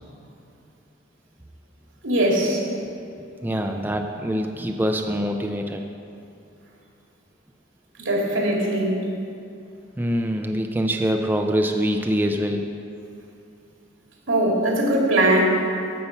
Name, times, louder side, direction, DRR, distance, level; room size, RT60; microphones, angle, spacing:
voice 1, 2.0-2.7 8.0-9.0 14.3-15.6, right 1 dB, 90° right, -2 dB, 2.4 m, -20 dB
voice 2, 3.4-5.8 10.0-12.7, equal, 10° right, 4 dB, 0.4 m, -24 dB
15.0 x 5.6 x 5.7 m, 2.7 s
head